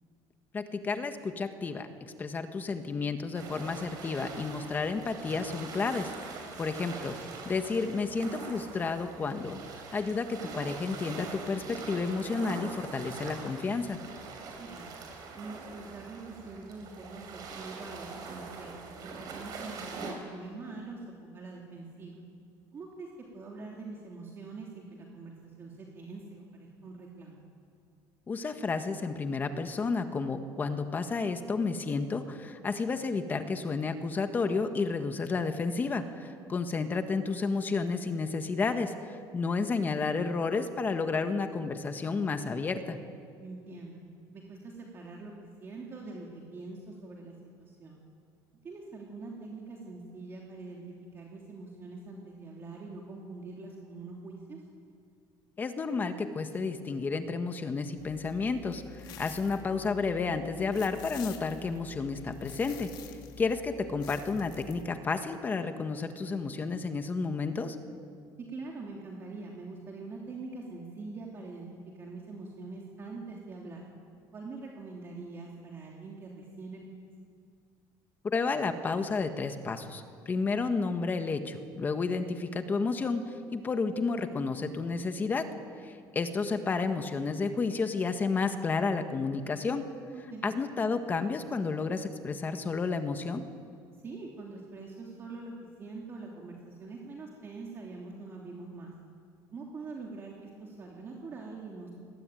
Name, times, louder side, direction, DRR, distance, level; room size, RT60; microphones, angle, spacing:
voice 1, 0.5-1.9 2.2-6.1 6.6-7.1 7.4-14.0 28.3-43.0 55.6-62.9 63.4-67.8 78.2-85.5 85.8-89.9 90.4-93.4, left 4 dB, 20° left, 7 dB, 1.6 m, -31 dB
sound 1, 3.3-20.1, right 4 dB, 45° right, 6.2 m, -43 dB
voice 2, 14.6-15.0 15.3-22.2 22.7-23.1 23.3-27.4 36.5-36.7 43.4-44.0 44.3-48.0 48.6-54.6 68.4-71.7 72.0-73.8 74.3-76.8 90.1-90.4 94.0-95.5 95.8-98.9 99.5-101.9, right 3 dB, 30° right, -2 dB, 3.2 m, -44 dB
sound 2, 58.0-64.8, left 8 dB, 60° left, 2.5 m, -48 dB
28.5 x 21.5 x 9.3 m, 2.3 s
cardioid pair, 165°, 9 cm